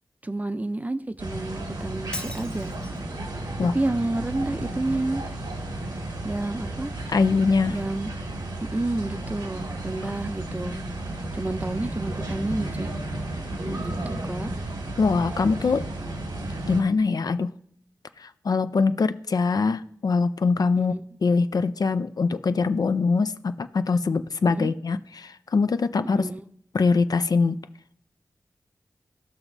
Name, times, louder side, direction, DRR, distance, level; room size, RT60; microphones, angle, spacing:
voice 1, 0.2-2.7 3.7-5.2 6.2-6.9 7.7-8.1 8.7-10.7 11.3-12.9 13.8-14.5 20.8-21.0 24.4-24.7 26.2-26.4, right 2 dB, 20° right, 10 dB, 0.5 m, -30 dB
sound 1, 1.2-16.8, right 1 dB, 90° right, 1.6 m, -33 dB
Shatter, 2.1-3.1, left 1 dB, 15° left, 0.7 m, -38 dB
voice 2, 7.1-7.8 15.0-15.9 16.7-17.5 18.2-20.9 21.2-26.3 26.7-27.6, left 4 dB, 65° left, 11 dB, 0.4 m, -23 dB
16.0 x 5.9 x 2.7 m, 0.67 s
wide cardioid pair, 65°, 7 cm